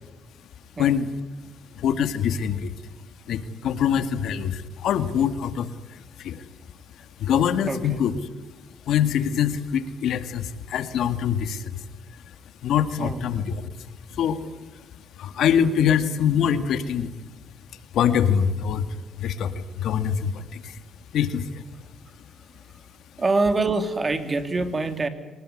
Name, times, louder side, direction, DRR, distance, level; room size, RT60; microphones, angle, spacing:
voice 1, 1.8-2.7 3.3-6.4 7.2-8.1 8.9-11.7 12.6-13.7 14.1-14.4 15.2-17.1 17.9-18.9 19.2-20.8 21.1-21.6, left 8 dB, 75° left, 10 dB, 2.1 m, -24 dB
voice 2, 7.7-8.0 13.0-13.2 23.2-25.1, right 3 dB, 30° right, 9 dB, 3.1 m, -25 dB
24.5 x 19.5 x 9.9 m, 1.1 s
cardioid pair, 90°, 0 cm